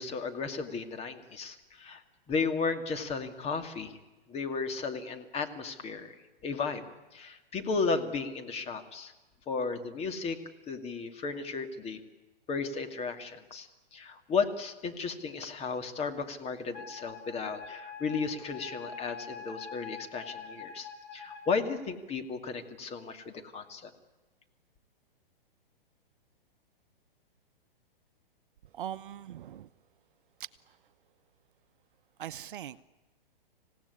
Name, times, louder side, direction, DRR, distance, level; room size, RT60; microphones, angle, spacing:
voice 1, 0.0-2.0 2.3-4.0 4.3-6.1 6.4-6.8 7.1-9.1 9.5-10.4 10.7-12.0 12.5-23.9, left 4 dB, 20° left, 6 dB, 2.4 m, -34 dB
Wind instrument woodwind instrument, 16.7-21.5, left 5 dB, 55° left, 5.6 m, -44 dB
voice 2, 28.7-29.7 30.4-30.5 32.2-32.8, right 10 dB, 60° right, 13 dB, 0.9 m, -40 dB
26.5 x 17.0 x 9.7 m, 1.1 s
hypercardioid pair, 125°, 29 cm